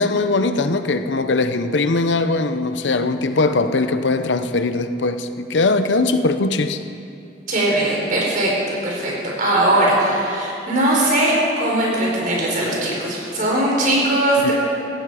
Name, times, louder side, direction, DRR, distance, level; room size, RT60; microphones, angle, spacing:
voice 1, 0.0-6.8 14.4-14.5, left 3 dB, 85° left, 10 dB, 0.8 m, -20 dB
voice 2, 7.5-8.5 8.8-9.1 9.4-11.3 11.6-14.5, right 1 dB, 50° right, -3 dB, 4.6 m, -19 dB
16.0 x 15.5 x 5.0 m, 2.6 s
head